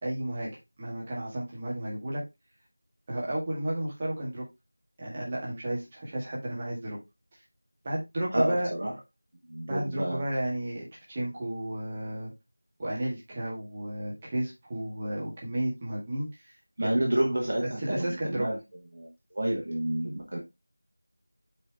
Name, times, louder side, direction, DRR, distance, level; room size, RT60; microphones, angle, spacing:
voice 1, 0.0-0.5 0.8-2.2 3.1-4.5 5.0-7.0 7.8-8.7 9.7-12.3 12.8-17.0 17.8-18.5, right 1 dB, 15° right, 1.9 m, -32 dB
voice 2, 8.3-8.9 9.5-10.2 16.8-18.6 18.9-19.1 19.3-20.4, right 1 dB, 40° right, 1.7 m, -29 dB
8.2 x 5.0 x 3.3 m
figure-of-eight pair, 175°, 0 cm